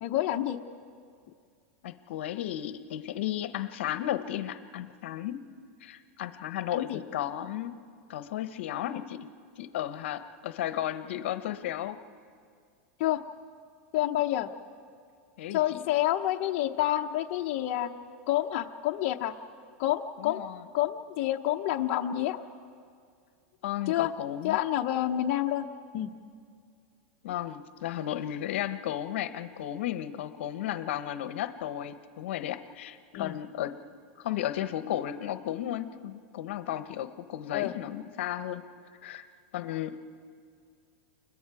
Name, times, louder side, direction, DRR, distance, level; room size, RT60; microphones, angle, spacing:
voice 1, 0.0-0.6 6.7-7.0 13.0-13.2 13.9-14.5 15.5-17.9 18.3-19.3 19.8-20.4 20.7-22.4 23.9-24.1 24.4-25.7 25.9-26.1 33.1-33.4 37.5-37.7, left 13 dB, 50° left, 3 dB, 0.8 m, -28 dB
voice 2, 1.8-5.4 5.8-7.7 8.1-9.3 9.6-12.0 15.4-15.8 20.2-20.7 23.6-24.6 27.2-33.8 34.2-38.6 39.0-39.2 39.5-40.0, left 12 dB, 75° left, 10 dB, 0.9 m, -34 dB
29.5 x 21.5 x 4.8 m, 2.2 s
supercardioid pair, 150°, 6 cm